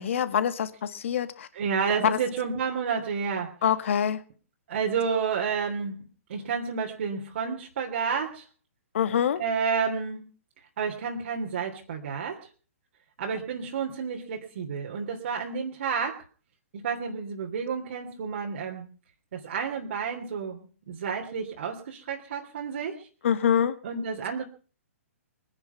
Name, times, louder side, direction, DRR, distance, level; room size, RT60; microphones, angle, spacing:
voice 1, 0.0-1.5 2.0-2.2 3.6-4.2 8.9-9.4 23.2-23.7, left 8 dB, 60° left, 11 dB, 1.9 m, -25 dB
voice 2, 1.5-3.5 4.7-6.0 6.3-8.4 9.4-10.2 10.8-12.4 13.2-16.2 16.7-18.8 19.3-23.1 23.8-24.4, right 6 dB, 55° right, 0 dB, 3.2 m, -30 dB
23.5 x 10.5 x 5.8 m, 0.40 s
figure-of-eight pair, 125°, 8 cm